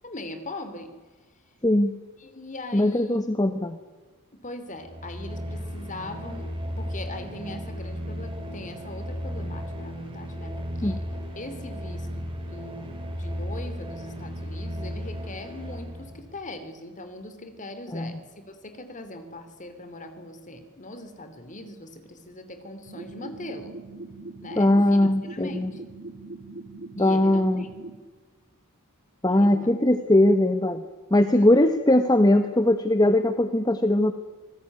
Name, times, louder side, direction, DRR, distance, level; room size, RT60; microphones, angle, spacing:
voice 1, 0.0-0.9 2.2-3.2 4.3-11.1 11.4-18.2 18.4-23.8 24.4-25.0 25.3-25.8 27.0-27.7 29.3-29.7 31.3-31.5, left 2 dB, 35° left, 9 dB, 3.2 m, -40 dB
voice 2, 1.6-1.9 2.7-3.8 10.8-10.9 17.9-18.2 24.6-25.7 27.0-27.6 29.2-30.8 31.1-34.1, left 1 dB, 20° left, 9 dB, 1.0 m, -20 dB
sound 1, 4.7-16.4, equal, 25° right, 5.1 m, -35 dB
sound 2, 22.8-28.0, right 2 dB, 55° right, 2.3 m, -41 dB
26.0 x 19.0 x 9.5 m, 1.4 s
head